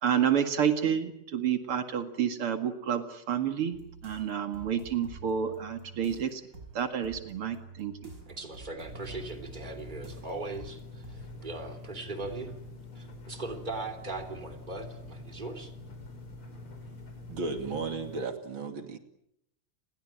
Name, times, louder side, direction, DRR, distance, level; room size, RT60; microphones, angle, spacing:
voice 1, 0.0-6.4 6.7-8.0, right 8 dB, 90° right, 8 dB, 3.0 m, -29 dB
sound 1, 3.7-11.1, right 3 dB, 35° right, 6.2 m, -49 dB
voice 2, 8.3-12.6 12.9-15.7, right 3 dB, 20° right, 6 dB, 3.3 m, -39 dB
sound 2, 8.9-18.2, left 2 dB, 75° left, 5.2 m, -45 dB
voice 3, 17.3-19.0, right 4 dB, 65° right, 7 dB, 3.2 m, -34 dB
29.5 x 21.0 x 8.9 m, 0.78 s
omnidirectional pair, 2.4 m